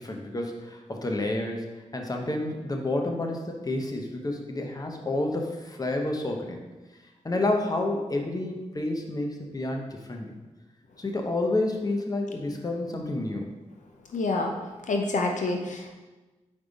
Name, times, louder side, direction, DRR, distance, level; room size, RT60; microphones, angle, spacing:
voice 1, 0.0-1.7 1.9-6.6 7.2-10.3 11.0-13.5, left 2 dB, 30° left, 2 dB, 0.9 m, -29 dB
voice 2, 14.1-14.5 14.9-15.9, left 2 dB, 75° left, 2 dB, 0.6 m, -27 dB
5.4 x 4.7 x 4.0 m, 1.2 s
cardioid pair, 65°, 13 cm